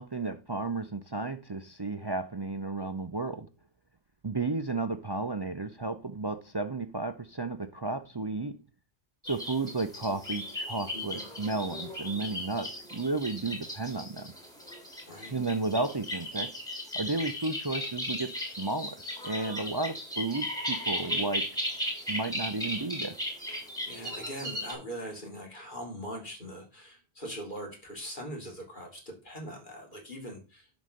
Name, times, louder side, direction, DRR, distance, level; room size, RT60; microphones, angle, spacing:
voice 1, 0.0-3.5 4.2-8.6 9.2-14.3 15.3-16.5 16.9-19.0 19.2-21.4 22.1-23.2, right 3 dB, 30° right, 0.5 m, -33 dB
sound 1, 9.3-24.7, left 1 dB, 5° left, 3.4 m, -36 dB
voice 2, 10.9-11.3 15.1-15.4 23.8-30.8, equal, 45° left, 2.8 m, -41 dB
11.0 x 4.1 x 6.5 m
omnidirectional pair, 1.1 m